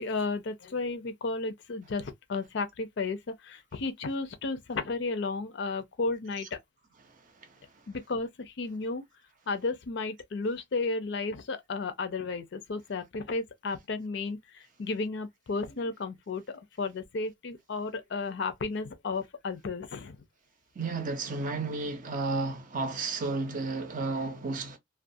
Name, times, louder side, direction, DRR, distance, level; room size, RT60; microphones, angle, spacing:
voice 1, 0.0-3.2 3.4-6.6 7.9-9.0 9.5-16.4 16.8-20.2, left 3 dB, 60° left, 0.5 m, -33 dB
voice 2, 20.8-24.8, right 3 dB, 45° right, 0.6 m, -32 dB
2.3 x 2.2 x 2.5 m
head